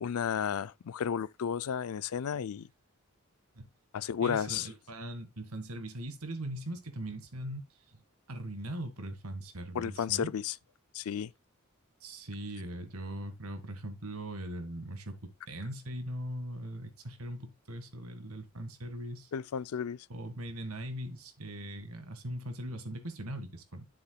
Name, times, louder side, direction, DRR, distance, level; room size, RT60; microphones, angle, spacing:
voice 1, 0.0-2.7 3.9-4.7 9.7-10.5 10.9-11.3 19.3-20.0, left 8 dB, 85° left, 0.4 m, -32 dB
voice 2, 4.2-7.6 7.9-8.0 8.3-10.3 12.0-19.3 20.1-23.8, right 1 dB, 85° right, 1.8 m, -40 dB
9.7 x 7.2 x 2.3 m
head